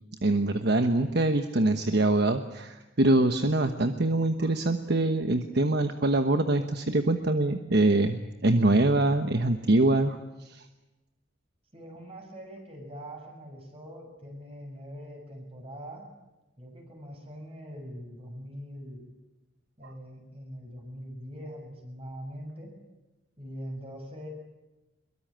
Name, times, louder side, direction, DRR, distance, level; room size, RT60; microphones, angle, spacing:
voice 1, 0.2-10.2 10.4-10.6 19.8-19.9, right 2 dB, 55° right, 7 dB, 1.2 m, -24 dB
voice 2, 11.7-16.1 16.6-19.0 19.8-22.8 23.4-24.3, equal, 30° right, 3 dB, 7.2 m, -42 dB
23.0 x 22.5 x 8.9 m, 1.0 s
head